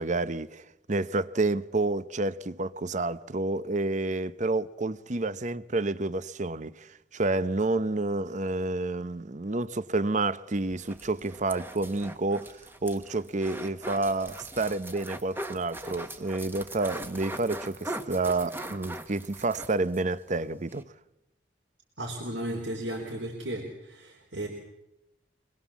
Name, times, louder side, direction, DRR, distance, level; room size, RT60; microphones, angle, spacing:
voice 1, 0.0-20.8, right 2 dB, 40° right, 0.8 m, -29 dB
sound 1, 10.7-20.1 20.4-20.5 20.7-20.8, right 1 dB, 10° right, 1.5 m, -41 dB
voice 2, 22.0-24.5, right 1 dB, 80° right, 4.1 m, -35 dB
25.0 x 21.0 x 7.3 m
head